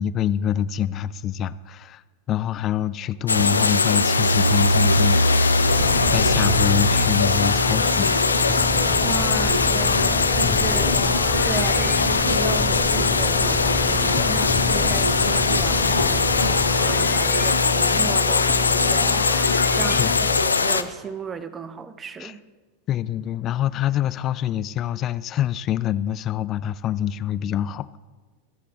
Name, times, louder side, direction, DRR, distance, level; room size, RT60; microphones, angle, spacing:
voice 1, 0.0-2.0 2.3-5.5 6.1-8.1 9.8-10.7 14.2-14.4 17.2-17.3 20.0-20.2 22.2-22.3 22.9-28.0, left 10 dB, 30° left, 17 dB, 0.4 m, -26 dB
sound 1, 3.3-20.8, left 4 dB, 75° left, 0.6 m, -21 dB
sound 2, 3.3-17.5, right 1 dB, 80° right, 0.5 m, -27 dB
sound 3, 5.6-20.4, left 2 dB, 5° left, 1.1 m, -28 dB
voice 2, 9.0-16.3 16.8-19.3 19.7-22.4, right 5 dB, 20° right, 12 dB, 0.8 m, -35 dB
19.5 x 7.6 x 3.9 m, 1.4 s
figure-of-eight pair, 90°, 0 cm